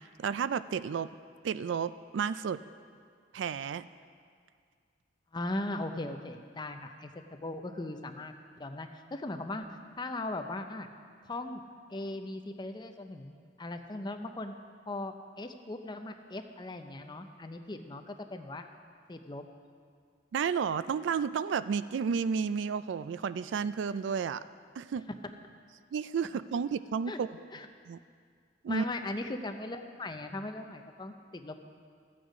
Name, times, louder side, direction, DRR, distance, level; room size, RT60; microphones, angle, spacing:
voice 1, 0.2-1.1 1.4-2.6 3.3-3.8 20.3-24.4 24.8-25.1 25.9-27.4 27.9-28.0 28.6-28.9, right 6 dB, 90° right, 15 dB, 0.3 m, -32 dB
voice 2, 5.3-8.3 8.6-9.7 10.0-10.9 11.2-11.6 11.9-14.5 14.9-18.6 19.1-19.5 27.1-27.2 27.5-27.7 28.7-31.6, left 2 dB, 25° left, 6 dB, 0.6 m, -38 dB
13.5 x 8.6 x 5.1 m, 2.1 s
head